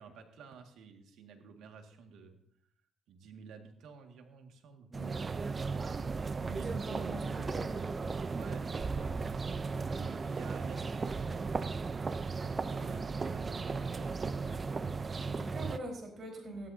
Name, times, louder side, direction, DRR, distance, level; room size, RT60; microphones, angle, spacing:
voice 1, 0.0-2.4 3.1-4.9 5.7-7.0 8.3-9.1 9.7-12.0 12.4-14.6, right 5 dB, 80° right, 4 dB, 1.9 m, -53 dB
sound 1, 4.9-15.8, right 4 dB, 35° right, 0.6 m, -36 dB
voice 2, 6.5-7.8 15.2-16.7, right 1 dB, 50° right, 1 dB, 4.4 m, -44 dB
16.5 x 13.0 x 2.8 m, 0.70 s
cardioid pair, 90°, 0 cm